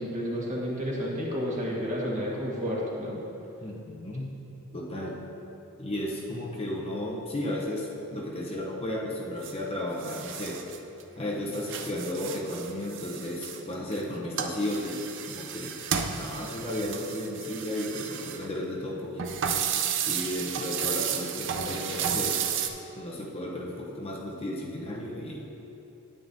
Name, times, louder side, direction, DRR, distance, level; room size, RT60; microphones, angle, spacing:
voice 1, 0.0-3.2, equal, 35° right, -4 dB, 1.4 m, -31 dB
voice 2, 3.6-4.4 4.7-5.2 5.8-10.7 11.2-15.8 16.1-19.3 20.1-22.4 22.9-25.4, left 1 dB, 25° left, -2 dB, 0.7 m, -34 dB
sound 1, 9.4-9.5 10.0-11.0 11.3-14.0 14.4-18.5 19.2-22.7, right 8 dB, 55° right, 0.5 m, -32 dB
9.4 x 8.9 x 2.6 m, 3.0 s
head